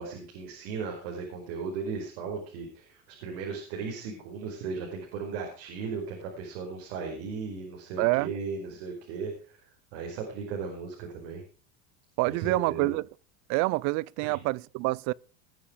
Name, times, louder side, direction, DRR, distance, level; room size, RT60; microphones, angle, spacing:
voice 1, 0.0-9.6 9.9-11.4 12.3-12.9 14.2-14.4, right 5 dB, 75° right, 5.0 m, -36 dB
voice 2, 8.0-8.3 12.2-13.1 13.5-15.1, right 22 dB, 60° right, 0.6 m, -27 dB
20.0 x 7.2 x 5.1 m
supercardioid pair, 105°, 32 cm